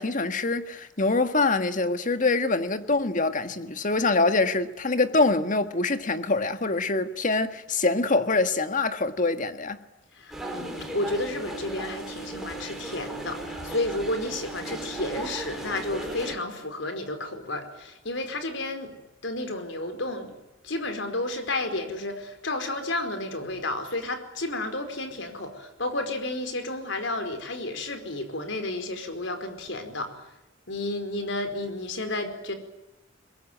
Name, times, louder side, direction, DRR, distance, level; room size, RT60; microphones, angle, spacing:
voice 1, 0.0-9.8, left 3 dB, 45° left, 1.7 m, -24 dB
voice 2, 10.1-18.9 19.2-20.3 20.6-30.2 30.7-32.5, left 2 dB, 75° left, 4.8 m, -31 dB
sound 1, 10.3-16.4, right 2 dB, ahead, 5.1 m, -36 dB
23.0 x 22.0 x 9.3 m
head